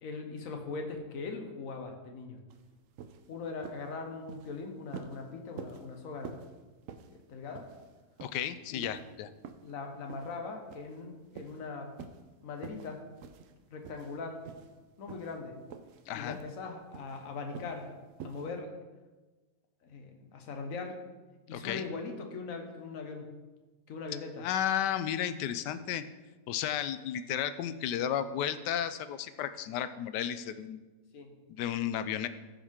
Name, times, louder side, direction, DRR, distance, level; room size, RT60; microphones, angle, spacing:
voice 1, 0.0-2.4 3.3-6.4 7.1-7.7 8.7-8.9 9.6-11.9 12.4-13.1 13.7-14.5 15.0-15.6 16.1-17.9 18.2-18.7 19.8-21.0 21.5-23.3 23.9-24.4 31.1-31.3, left 4 dB, 55° left, 4 dB, 1.4 m, -40 dB
sound 1, 2.5-2.6 3.0-3.2 3.6-3.9 4.2-4.5 4.9-5.2 5.6-5.8 6.2-6.5 6.9-7.1 7.5-7.9 8.2-8.4 8.8-9.0 9.4-9.7 10.1-10.3 10.7-11.0 11.3-11.6 12.0-12.2 12.6-12.9 13.2-13.5 13.8-14.1 14.4-14.7 15.1-15.4 15.7-16.0 16.3-16.5 16.9-17.2 17.5-17.8 18.2-18.5, right 6 dB, 65° right, 0.8 m, -47 dB
voice 2, 8.2-9.3 16.1-16.4 21.5-21.8 24.4-26.0 26.5-30.8 31.5-32.3, left 10 dB, 85° left, 13 dB, 1.2 m, -33 dB
14.0 x 5.6 x 3.6 m, 1.2 s
omnidirectional pair, 1.8 m